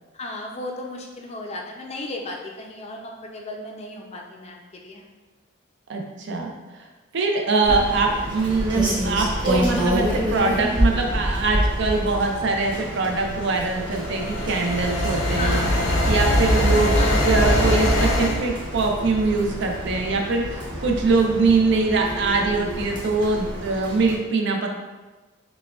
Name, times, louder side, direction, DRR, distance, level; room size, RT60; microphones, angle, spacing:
voice 1, 0.1-5.0 7.7-7.9 15.4-15.7 17.0-17.3, left 2 dB, 30° left, 1 dB, 0.4 m, -34 dB
voice 2, 5.9-6.6 7.1-15.7 16.1-17.0 17.2-24.7, right 3 dB, 60° right, 2 dB, 0.5 m, -23 dB
Rain, 7.6-24.2, equal, 20° right, 0.8 m, -29 dB
sound 1, 13.7-18.4, equal, 80° left, 0.7 m, -21 dB
6.0 x 2.2 x 2.3 m, 1.2 s
head